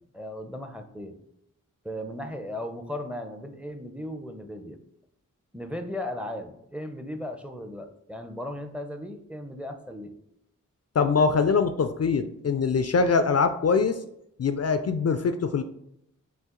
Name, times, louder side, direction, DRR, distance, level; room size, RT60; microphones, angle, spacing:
voice 1, 0.1-1.1 1.8-4.8 5.5-10.1, left 1 dB, 5° right, 6 dB, 0.6 m, -36 dB
voice 2, 11.0-14.0 14.4-15.6, left 5 dB, 50° left, 9 dB, 0.4 m, -23 dB
5.6 x 2.5 x 3.8 m, 0.77 s
cardioid pair, 45°, 32 cm